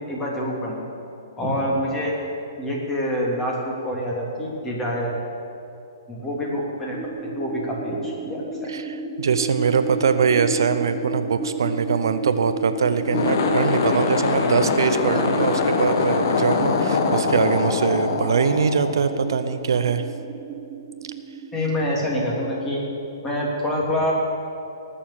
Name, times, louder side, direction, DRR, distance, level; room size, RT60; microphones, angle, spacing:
voice 1, 0.1-0.9 1.4-2.1 2.6-5.1 6.1-7.0 7.3-8.7 21.5-22.8 23.2-24.1, left 1 dB, 15° left, -3 dB, 3.3 m, -26 dB
sound 1, 6.9-21.9, right 4 dB, 25° right, 0.7 m, -33 dB
voice 2, 8.7-20.1, right 6 dB, 70° right, 10 dB, 0.7 m, -22 dB
sound 2, 13.0-19.5, left 4 dB, 55° left, 1.4 m, -23 dB
18.5 x 6.8 x 7.4 m, 2.7 s
hypercardioid pair, 125°, 2 cm